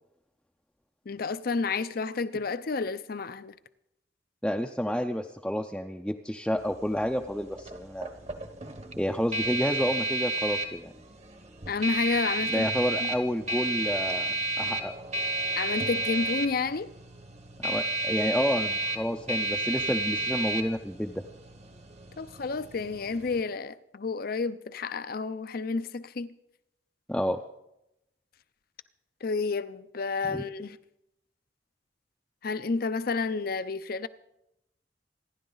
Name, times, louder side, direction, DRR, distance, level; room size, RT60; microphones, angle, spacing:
voice 1, 1.1-3.6 11.7-12.7 13.0-13.1 15.6-16.9 22.2-26.3 29.2-30.8 32.4-34.1, left 4 dB, 55° left, 0.5 m, -30 dB
voice 2, 4.4-8.1 9.0-10.9 12.5-14.9 17.6-21.2 27.1-27.4 30.3-30.4, equal, 5° left, 0.5 m, -30 dB
sound 1, 6.6-23.4, right 2 dB, 35° right, 1.1 m, -32 dB
27.5 x 10.5 x 3.9 m
head